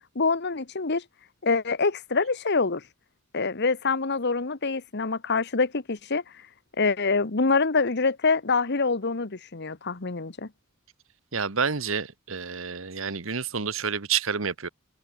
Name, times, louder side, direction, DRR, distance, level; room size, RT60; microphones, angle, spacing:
voice 1, 0.1-1.0 1.4-2.8 3.3-6.2 6.8-10.5, left 4 dB, 55° left, 1.2 m, -25 dB
voice 2, 11.3-14.7, right 6 dB, 70° right, 1.4 m, -29 dB
head